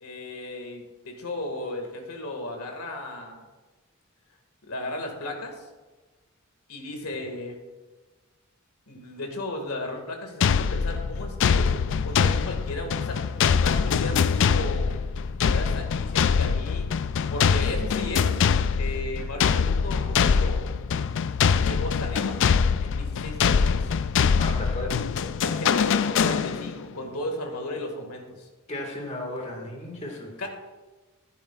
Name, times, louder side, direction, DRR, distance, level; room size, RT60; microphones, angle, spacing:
voice 1, 0.0-3.4 4.7-5.7 6.7-7.6 8.9-11.7 12.0-13.2 13.5-14.9 15.4-16.9 17.3-18.3 18.8-20.6 21.6-22.4 22.8-23.9 25.4-28.5 30.4-30.5, left 1 dB, 85° left, 3 dB, 1.9 m, -35 dB
sound 1, 10.4-26.9, left 6 dB, 60° left, 0.4 m, -23 dB
voice 2, 24.4-25.1 28.7-30.4, left 1 dB, 30° left, 1 dB, 1.8 m, -35 dB
14.5 x 9.8 x 2.4 m, 1.2 s
head